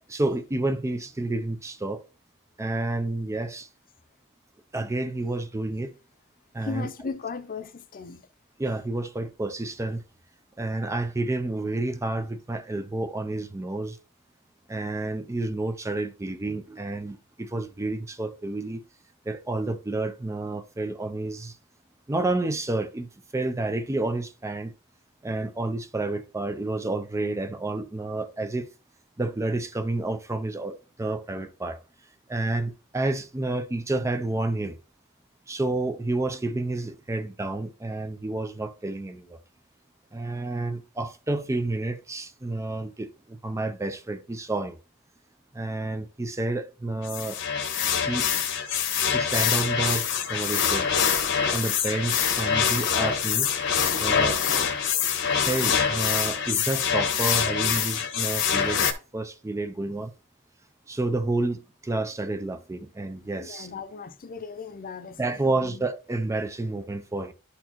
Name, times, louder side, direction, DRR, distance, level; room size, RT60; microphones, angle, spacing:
voice 1, 0.1-2.0 2.6-3.7 4.7-5.9 6.5-6.9 8.6-10.0 10.6-14.0 14.7-18.8 19.3-21.6 22.1-24.7 25.2-28.7 29.2-31.8 32.3-34.8 35.5-39.4 40.1-44.8 45.5-47.4 48.1-48.3 49.1-50.9 51.5-53.5 54.0-54.4 55.4-58.9 59.1-60.1 60.9-63.7 65.2-67.3, right 2 dB, 15° right, 0.4 m, -30 dB
voice 2, 6.6-8.2 63.4-65.8, left 5 dB, 40° left, 0.6 m, -37 dB
sound 1, 47.0-58.9, left 7 dB, 60° left, 0.9 m, -25 dB
11.0 x 4.3 x 2.9 m
head